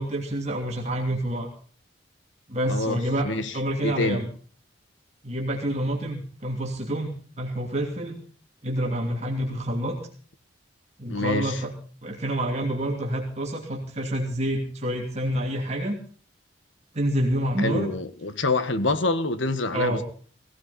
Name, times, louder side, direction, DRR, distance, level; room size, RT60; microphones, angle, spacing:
voice 1, 0.0-1.5 2.5-3.3 3.5-4.3 5.2-8.2 8.6-10.0 11.0-11.7 12.0-16.0 16.9-17.9 19.7-20.0, right 1 dB, 35° right, 2.7 m, -27 dB
voice 2, 2.7-4.2 11.1-11.6 17.6-20.0, left 2 dB, 80° left, 1.6 m, -27 dB
17.5 x 17.0 x 4.2 m
head